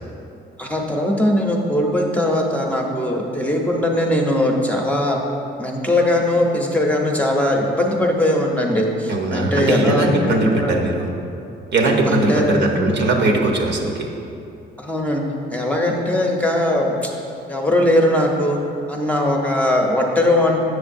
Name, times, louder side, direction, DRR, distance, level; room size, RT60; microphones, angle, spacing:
voice 1, 0.6-5.2 5.6-10.8 12.1-12.6 14.8-15.2 15.5-17.1 17.5-18.6 18.9-20.6, left 1 dB, 5° left, 0 dB, 0.7 m, -20 dB
voice 2, 9.1-11.1 11.7-14.1, right 2 dB, 60° right, 0 dB, 0.9 m, -19 dB
8.0 x 6.3 x 2.6 m, 2.6 s
cardioid pair, 90°, 20 cm